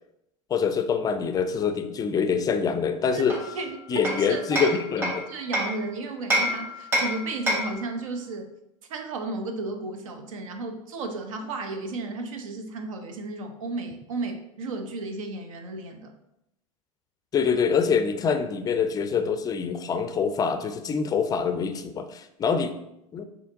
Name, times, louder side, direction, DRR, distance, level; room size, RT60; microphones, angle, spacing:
voice 1, 0.5-3.4 3.9-5.3 17.3-22.7 23.1-23.2, left 6 dB, 20° left, 9 dB, 0.4 m, -25 dB
Hammer, 3.3-5.8 6.3-7.9, equal, 10° right, 1.2 m, -27 dB
voice 2, 3.5-8.5 8.9-16.1, right 3 dB, 70° right, 6 dB, 0.7 m, -33 dB
5.6 x 2.8 x 2.7 m, 0.82 s
figure-of-eight pair, 85°, 18 cm